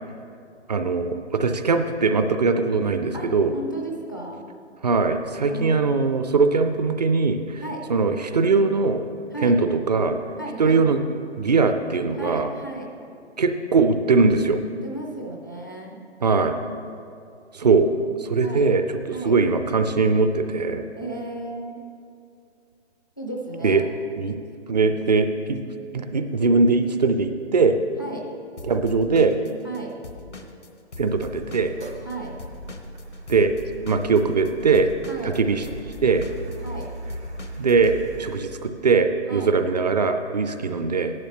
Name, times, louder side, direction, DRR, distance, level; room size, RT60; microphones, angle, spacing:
voice 1, 0.7-3.5 4.8-7.6 7.9-9.0 9.4-10.2 10.6-11.0 11.4-12.5 13.4-14.6 16.2-16.6 17.5-17.9 18.2-18.8 19.2-20.8 23.6-23.8 24.2-24.4 24.7-25.6 25.9-27.8 28.6-29.3 31.0-31.7 33.3-33.5 33.9-34.9 35.2-35.6 36.0-36.2 37.6-41.1, right 4 dB, 40° right, 8 dB, 0.5 m, -21 dB
voice 2, 3.1-4.4 5.5-5.8 7.6-7.9 9.3-9.6 10.4-10.9 12.1-12.9 14.6-16.0 18.4-18.7 19.1-19.4 21.0-21.8 23.2-23.9 28.0-28.2 29.6-29.9 32.0-32.3 35.1-35.3 36.6-36.9 39.3-39.6, right 2 dB, 20° left, -1 dB, 0.4 m, -34 dB
Drum kit / Drum, 28.6-32.1 32.4-37.9, left 3 dB, 85° left, 1.1 m, -41 dB
Car, 31.1-38.4, right 2 dB, 70° right, 1.7 m, -39 dB
15.0 x 11.0 x 2.9 m, 2.5 s
figure-of-eight pair, 135°, 35 cm